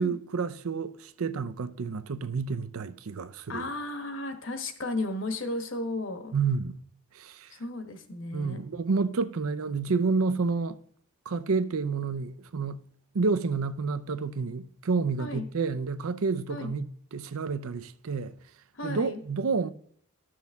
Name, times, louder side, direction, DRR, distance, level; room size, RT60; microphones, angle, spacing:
voice 1, 0.0-3.7 6.3-6.8 7.1-7.5 8.3-10.8 11.3-12.8 13.1-18.3 18.8-19.7, right 4 dB, 85° right, 0.6 m, -29 dB
voice 2, 3.5-6.3 7.5-8.6 15.2-15.4 16.5-16.7 18.7-19.2, left 2 dB, 60° left, 1.2 m, -34 dB
13.0 x 6.2 x 3.5 m
head